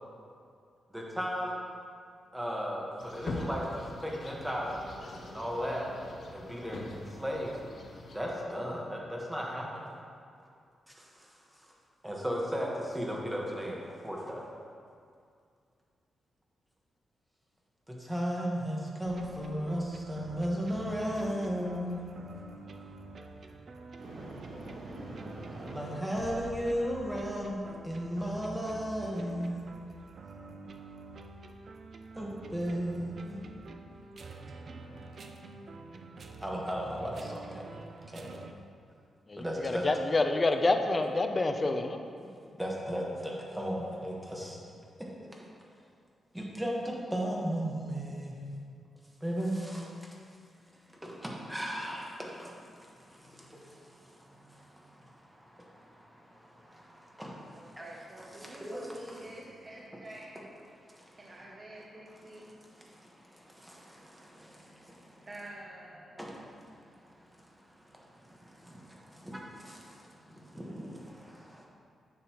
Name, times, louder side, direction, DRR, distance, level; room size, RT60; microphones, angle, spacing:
voice 1, 0.9-1.5 2.3-5.9 6.3-7.5 8.1-9.8 10.9-11.3 12.0-14.4 17.9-22.3 25.6-29.6 32.1-33.4 36.4-37.6 38.1-38.4 39.4-39.8 42.2-42.3 42.6-44.6 46.3-48.3 49.2-49.9 51.0-58.9 60.9-61.4 61.9-62.0 62.3-62.5 62.7-65.3 66.2-71.6, equal, 5° right, -3 dB, 1.4 m, -36 dB
sound 1, 3.0-8.2, left 2 dB, 50° left, 0.9 m, -43 dB
sound 2, 19.0-38.5, right 3 dB, 50° right, 0.5 m, -47 dB
voice 2, 24.0-26.0, right 1 dB, 75° right, -6 dB, 1.6 m, -44 dB
voice 3, 39.3-42.0, left 2 dB, 30° left, 5 dB, 0.6 m, -28 dB
voice 4, 57.5-60.3 61.2-62.5 65.3-66.2, right 1 dB, 30° right, -4 dB, 0.8 m, -47 dB
10.0 x 6.7 x 3.1 m, 2.3 s
cardioid pair, 120°, 0 cm